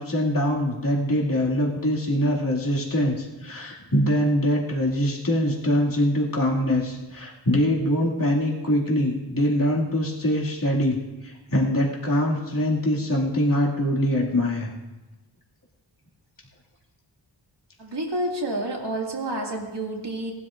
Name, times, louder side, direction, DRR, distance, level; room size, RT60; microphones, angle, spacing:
voice 1, 0.0-11.0 11.2-14.7, equal, 45° left, -4 dB, 2.4 m, -23 dB
voice 2, 17.8-20.3, right 1 dB, 60° right, -1 dB, 2.3 m, -29 dB
19.0 x 12.5 x 2.6 m, 1.1 s
wide cardioid pair, 90°, 46 cm